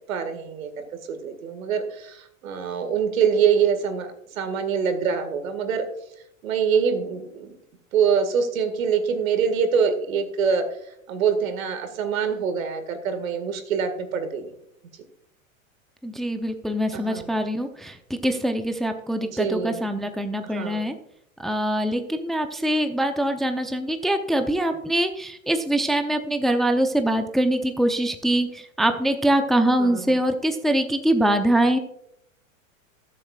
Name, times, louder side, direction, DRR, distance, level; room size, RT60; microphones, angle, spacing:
voice 1, 0.1-0.7 1.1-5.8 6.4-7.5 7.9-10.7 11.1-14.5 16.9-17.3 19.3-19.8 20.4-20.9 29.8-30.2, right 6 dB, 75° right, 8 dB, 2.0 m, -24 dB
voice 2, 16.0-20.9 21.4-31.8, right 1 dB, ahead, 6 dB, 0.7 m, -23 dB
19.5 x 7.5 x 2.4 m, 0.74 s
hypercardioid pair, 110°, 41 cm